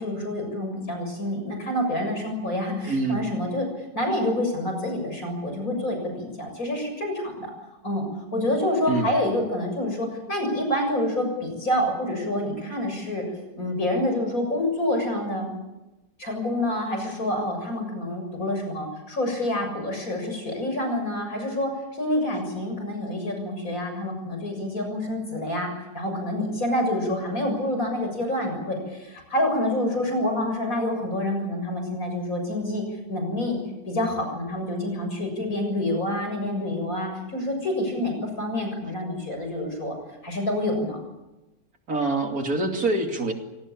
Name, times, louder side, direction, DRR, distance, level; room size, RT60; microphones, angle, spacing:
voice 1, 0.0-3.7 3.9-7.5 7.8-8.1 8.3-13.2 13.6-15.5 16.2-21.7 22.0-25.7 25.9-33.6 33.9-40.0 40.2-41.0, left 1 dB, 55° left, 4 dB, 7.5 m, -27 dB
voice 2, 2.9-3.3 8.9-9.1 41.9-43.3, right 2 dB, 60° right, 4 dB, 3.1 m, -25 dB
27.5 x 18.0 x 8.6 m, 1.0 s
omnidirectional pair, 1.7 m